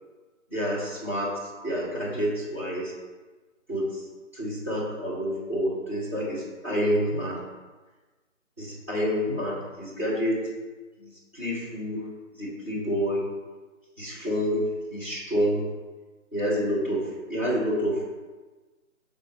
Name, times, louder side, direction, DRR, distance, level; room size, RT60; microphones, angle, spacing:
voice 1, 0.5-1.3 1.6-2.9 3.7-4.0 4.3-7.4 8.6-10.5 11.0-12.0 12.4-13.2 14.0-15.7 16.3-18.0, equal, 10° right, -11 dB, 0.8 m, -28 dB
5.7 x 3.7 x 5.0 m, 1.3 s
figure-of-eight pair, 150°, 39 cm